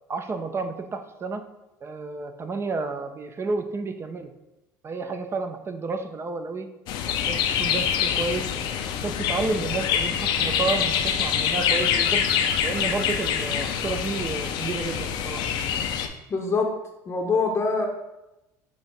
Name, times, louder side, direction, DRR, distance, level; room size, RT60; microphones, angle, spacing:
voice 1, 0.1-1.5 1.8-4.3 4.8-6.7 7.0-8.5 9.0-12.2 12.6-15.4, right 3 dB, 30° right, 7 dB, 0.5 m, -31 dB
sound 1, 6.9-16.1, left 8 dB, 60° left, 0.5 m, -25 dB
voice 2, 16.3-16.7 17.1-17.9, left 4 dB, 30° left, 1 dB, 0.7 m, -24 dB
6.0 x 2.6 x 3.4 m, 0.95 s
hypercardioid pair, 80°, 9 cm